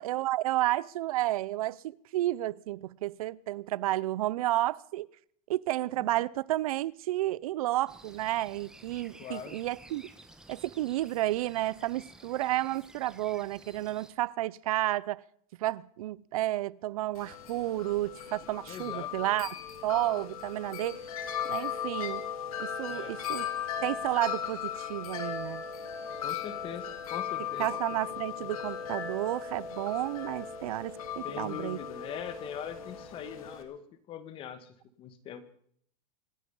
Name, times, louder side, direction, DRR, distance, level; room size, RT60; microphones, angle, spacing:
voice 1, 0.0-5.1 5.5-10.1 10.5-15.2 15.6-19.6 19.8-21.0 21.5-22.3 22.6-23.5 23.8-25.6 27.6-31.8, right 15 dB, 85° right, 0.7 m, -31 dB
sound 1, 7.9-14.1, right 1 dB, 5° right, 1.4 m, -53 dB
voice 2, 9.2-9.6 18.7-19.1 22.9-23.2 26.2-27.7 31.2-33.8 34.1-35.4, left 9 dB, 30° left, 1.7 m, -42 dB
Wind chime, 17.2-33.6, left 8 dB, 90° left, 2.7 m, -37 dB
26.0 x 9.9 x 5.5 m
supercardioid pair, 155°, 18 cm